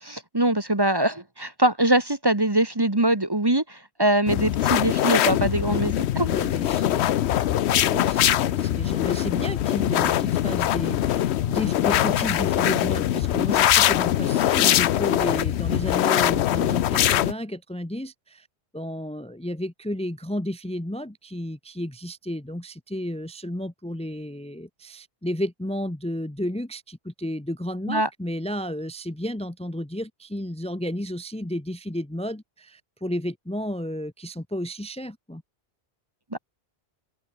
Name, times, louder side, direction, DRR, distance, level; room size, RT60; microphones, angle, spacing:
voice 1, 0.0-6.3 27.9-28.1 36.3-36.4, right 1 dB, 20° right, 1.5 m, -23 dB
sound 1, 4.3-17.3, left 12 dB, 85° left, 0.9 m, -22 dB
voice 2, 6.3-7.2 7.7-18.5 18.7-35.4, equal, 5° left, 1.1 m, -32 dB
open air
omnidirectional pair, 1.1 m